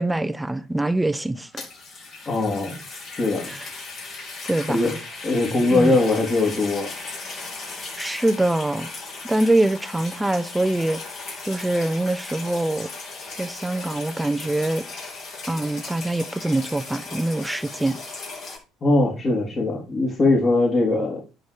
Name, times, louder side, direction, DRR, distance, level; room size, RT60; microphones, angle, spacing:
voice 1, 0.0-1.7 3.5-3.7 4.5-5.0 5.7-6.0 8.0-8.9 9.2-11.0 11.5-12.9 13.4-14.8 15.5-18.0, right 1 dB, 10° right, 0.8 m, -24 dB
sound 1, 1.3-18.6, left 3 dB, 55° left, 5.4 m, -37 dB
voice 2, 2.2-2.7 3.1-3.5 4.7-4.9 5.2-6.9 18.8-21.2, left 2 dB, 35° left, 3.3 m, -21 dB
10.5 x 5.3 x 4.6 m
figure-of-eight pair, 55°, 0 cm